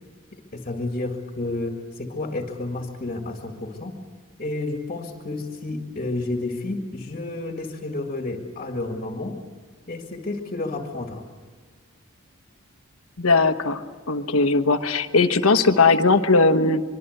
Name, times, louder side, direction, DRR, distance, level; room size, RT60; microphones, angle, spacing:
voice 1, 0.5-4.0 4.4-9.4 9.9-11.2, left 2 dB, 40° left, 3 dB, 1.9 m, -30 dB
voice 2, 13.2-13.8 14.1-16.8, left 3 dB, 70° left, 9 dB, 1.2 m, -19 dB
24.0 x 23.5 x 8.0 m, 1.4 s
head